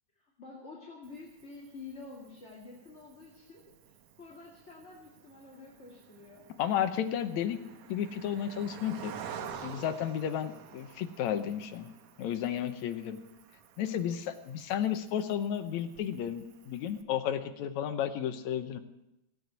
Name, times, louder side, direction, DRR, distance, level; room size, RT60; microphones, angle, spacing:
voice 1, 0.2-6.5, left 3 dB, 25° left, -4 dB, 2.1 m, -49 dB
Cricket, 1.0-17.0, right 7 dB, 70° right, 2.2 m, -50 dB
voice 2, 6.6-7.6 7.9-9.1 9.6-11.9 12.2-13.2 13.8-18.8, left 9 dB, 70° left, 9 dB, 2.1 m, -32 dB
17.5 x 9.3 x 8.1 m, 0.90 s
omnidirectional pair, 3.5 m